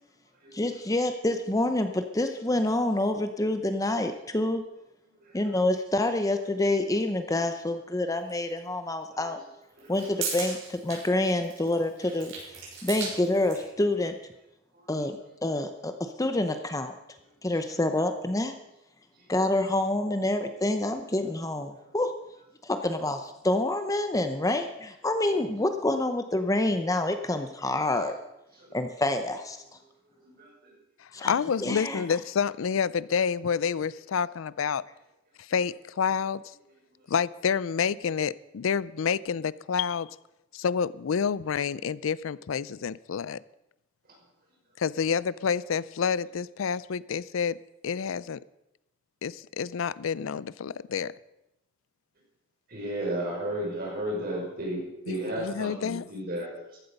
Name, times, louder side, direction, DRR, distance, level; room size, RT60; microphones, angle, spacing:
voice 1, 0.5-4.6 5.3-9.4 9.9-12.3 12.8-14.2 14.9-16.9 17.4-18.5 19.3-22.1 22.6-28.2 28.7-29.6 31.1-31.3 31.6-32.0, left 1 dB, 15° left, 8 dB, 0.7 m, -27 dB
voice 2, 5.2-5.5 9.1-9.3 9.8-10.2 14.7-14.9 28.6-28.8 30.2-30.7 31.2-31.3 52.7-56.8, right 1 dB, 50° right, -2 dB, 5.8 m, -34 dB
sound 1, 8.3-8.4 9.7-13.7, right 5 dB, 70° right, 5.8 m, -37 dB
voice 3, 31.3-34.8 35.4-36.4 37.1-40.1 40.5-43.4 44.8-47.6 47.8-48.4 49.2-51.1 55.1-56.0, left 6 dB, 80° left, 19 dB, 0.4 m, -28 dB
15.0 x 12.0 x 5.4 m, 0.90 s
head